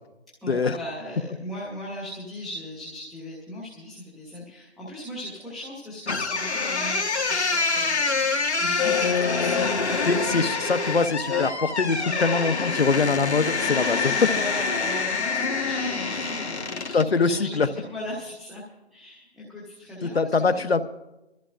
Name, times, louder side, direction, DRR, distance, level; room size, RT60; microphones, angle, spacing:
voice 1, 0.4-10.5 12.0-12.2 14.3-18.6 18.9-20.8, left 1 dB, ahead, -7 dB, 0.6 m, -38 dB
sound 1, 6.1-17.1, left 4 dB, 85° left, 1.5 m, -26 dB
voice 2, 10.1-14.3 16.9-17.7 20.0-20.8, left 4 dB, 65° left, 12 dB, 0.8 m, -23 dB
24.0 x 14.0 x 2.5 m, 0.96 s
figure-of-eight pair, 175°, 33 cm